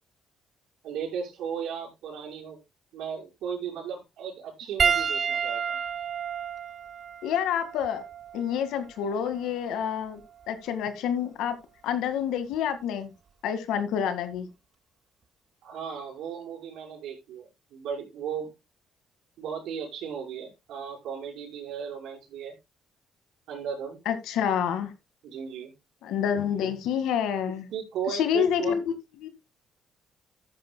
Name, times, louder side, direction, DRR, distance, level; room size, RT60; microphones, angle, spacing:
voice 1, 0.8-2.6 2.9-5.8 15.6-18.5 19.4-22.6 23.5-24.0 25.2-25.7 27.7-28.8, right 7 dB, 80° right, 5.4 m, -36 dB
Piano, 4.8-9.5 10.4-10.6 12.5-12.6, right 7 dB, 45° right, 0.6 m, -30 dB
voice 2, 7.2-8.0 8.3-10.2 10.5-11.6 11.8-13.1 13.4-14.5 24.1-24.9 26.0-27.7 28.1-28.8 29.2-29.3, left 8 dB, 90° left, 1.9 m, -28 dB
14.5 x 10.0 x 2.3 m
cardioid pair, 115°, 0 cm